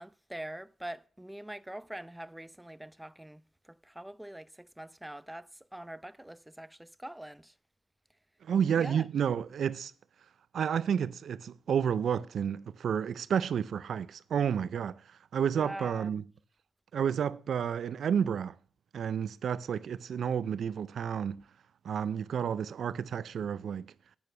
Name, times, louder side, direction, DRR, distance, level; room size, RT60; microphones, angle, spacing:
voice 1, 0.0-3.4 3.7-7.5 8.8-9.1 15.5-16.1, right 1 dB, 5° right, 0.4 m, -44 dB
voice 2, 8.4-9.9 10.5-16.2 16.9-18.6 18.9-21.4 21.8-23.9, right 8 dB, 75° right, 0.4 m, -31 dB
8.7 x 6.2 x 6.6 m
cardioid pair, 75°, 0 cm